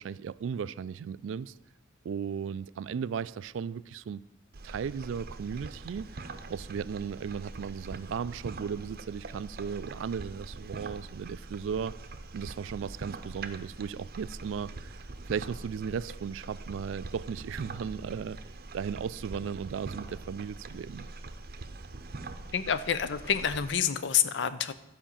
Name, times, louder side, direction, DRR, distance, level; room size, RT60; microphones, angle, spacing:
voice 1, 0.0-1.5 2.0-4.2 4.6-12.0 12.3-15.0 15.3-18.4 18.7-21.1, right 7 dB, 70° right, 0.3 m, -36 dB
sound 1, 4.5-23.7, right 3 dB, 50° right, 0.7 m, -43 dB
voice 2, 22.5-24.7, left 8 dB, 65° left, 0.6 m, -28 dB
12.5 x 5.1 x 7.1 m
head